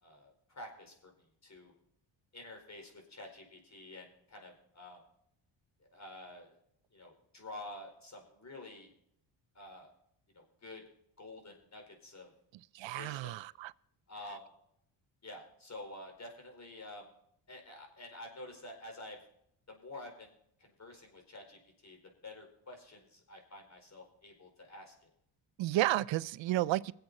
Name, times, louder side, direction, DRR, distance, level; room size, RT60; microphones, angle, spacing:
voice 1, 0.0-1.7 2.3-5.0 5.8-6.5 6.9-8.9 9.5-9.9 10.3-10.8 11.2-12.3 12.9-13.4 14.1-14.5 15.2-17.1 17.5-19.2 19.7-20.3 20.6-22.0 22.2-25.1, left 2 dB, 35° left, 4.7 m, -49 dB
voice 2, 12.7-13.7 25.6-26.9, right 16 dB, 70° right, 0.6 m, -32 dB
22.0 x 8.1 x 4.2 m
cardioid pair, 75°, 46 cm